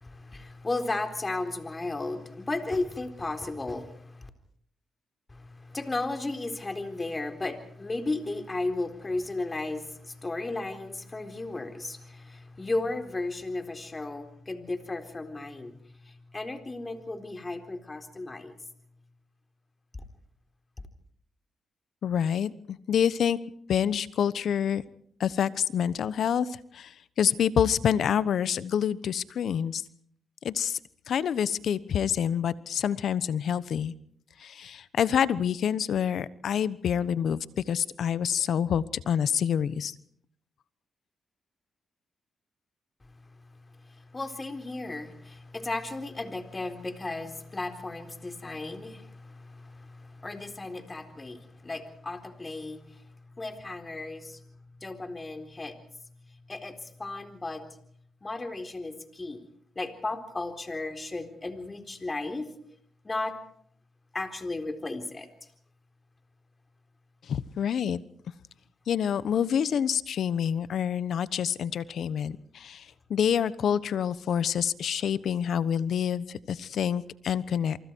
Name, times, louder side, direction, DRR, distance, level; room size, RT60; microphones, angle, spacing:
voice 1, 0.0-4.3 5.3-15.8 16.0-18.5 43.8-53.0 53.4-54.4 54.8-55.8 56.5-57.6 58.2-59.4 59.8-62.5 63.0-63.3 64.1-65.3, left 2 dB, 25° left, 7 dB, 3.9 m, -35 dB
voice 2, 22.0-23.4 23.7-24.8 25.2-29.8 30.4-30.8 31.1-33.9 34.4-39.9 67.3-68.0 68.9-77.8, left 8 dB, 70° left, 17 dB, 1.1 m, -27 dB
28.0 x 24.5 x 4.7 m, 0.63 s
cardioid pair, 65°, 0 cm